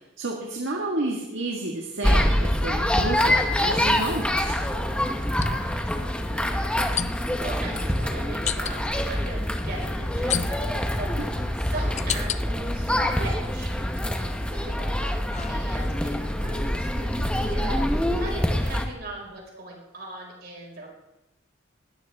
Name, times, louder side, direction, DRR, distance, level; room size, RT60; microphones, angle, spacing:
voice 1, 0.2-4.6 11.2-11.3, right 2 dB, 70° right, 0 dB, 1.7 m, -31 dB
sound 1, 2.0-18.9, left 1 dB, 5° left, 0.9 m, -25 dB
voice 2, 5.0-20.9, right 2 dB, 55° right, -1 dB, 5.0 m, -40 dB
sound 2, 5.4-5.5 7.0-7.4 8.5-8.8 10.3-10.9 11.5-12.4 13.0-13.6 14.1-16.1, left 9 dB, 35° left, 0.4 m, -32 dB
19.0 x 13.5 x 3.5 m, 0.89 s
head